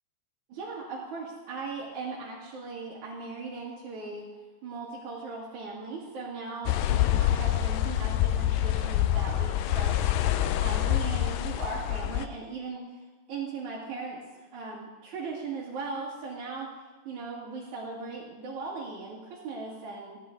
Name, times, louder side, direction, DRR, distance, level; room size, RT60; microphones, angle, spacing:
voice 1, 0.5-4.3 4.6-12.8 13.3-14.2 14.5-16.7 17.0-20.2, right 4 dB, 60° right, -6 dB, 3.2 m, -38 dB
sound 1, 6.7-12.3, left 12 dB, 85° left, 2.3 m, -26 dB
14.5 x 10.0 x 3.8 m, 1.2 s
omnidirectional pair, 3.9 m